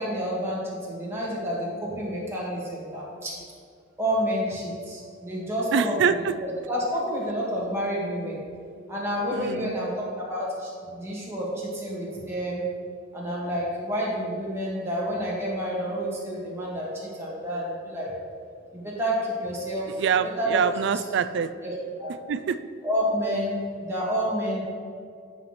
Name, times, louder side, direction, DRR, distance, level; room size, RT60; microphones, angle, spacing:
voice 1, 0.0-3.4 4.0-6.1 6.4-8.4 8.9-12.7 13.1-18.1 18.7-20.0 20.4-20.6 20.9-21.0 21.6-21.7 22.0-22.2 22.8-24.6, equal, 15° right, -5 dB, 1.7 m, -29 dB
voice 2, 5.7-6.3 9.3-9.8 20.0-21.5 22.3-22.6, right 7 dB, 65° right, 12 dB, 0.3 m, -25 dB
9.7 x 5.7 x 3.1 m, 2.2 s
head